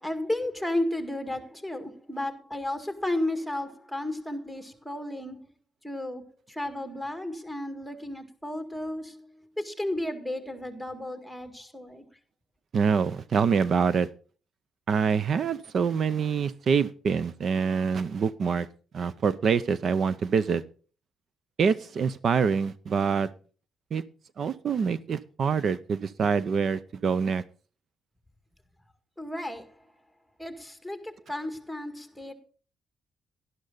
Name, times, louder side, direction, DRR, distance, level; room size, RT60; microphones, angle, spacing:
voice 1, 0.0-5.4 5.8-6.2 6.5-12.1 29.2-29.9 30.4-32.3, left 1 dB, ahead, 2.0 m, -33 dB
voice 2, 12.7-14.1 14.9-18.7 18.9-20.6 21.6-23.3 23.9-24.0 24.4-27.4, right 6 dB, 55° right, 0.6 m, -25 dB
11.5 x 11.0 x 3.9 m
cardioid pair, 90°, 0 cm